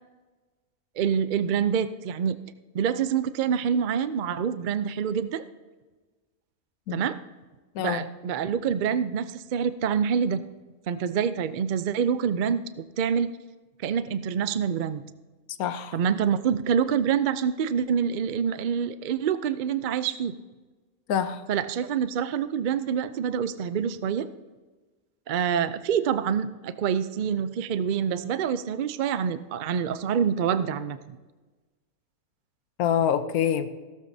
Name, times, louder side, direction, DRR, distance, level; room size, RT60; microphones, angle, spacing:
voice 1, 1.0-2.4 2.7-5.4 6.9-7.2 7.8-10.5 10.9-12.6 13.0-13.3 13.8-15.0 15.9-20.3 21.5-24.3 25.3-31.2, right 7 dB, 80° right, 12 dB, 0.4 m, -26 dB
voice 2, 7.7-8.1 15.6-16.0 21.1-21.4 32.8-33.7, left 9 dB, 80° left, 10 dB, 1.2 m, -26 dB
16.5 x 13.0 x 2.7 m, 1.3 s
omnidirectional pair, 1.5 m